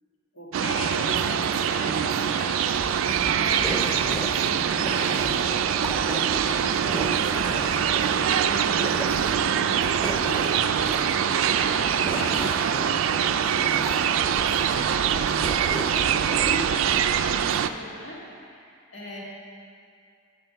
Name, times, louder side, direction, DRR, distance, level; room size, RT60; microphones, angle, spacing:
voice 1, 0.3-2.9 3.4-5.6 6.1-19.2, equal, 70° left, -5 dB, 1.7 m, -38 dB
sound 1, 0.5-17.7, right 8 dB, 85° right, 0.3 m, -24 dB
sound 2, 2.7-17.0, right 1 dB, 5° left, 1.3 m, -36 dB
10.0 x 4.6 x 6.5 m, 2.4 s
head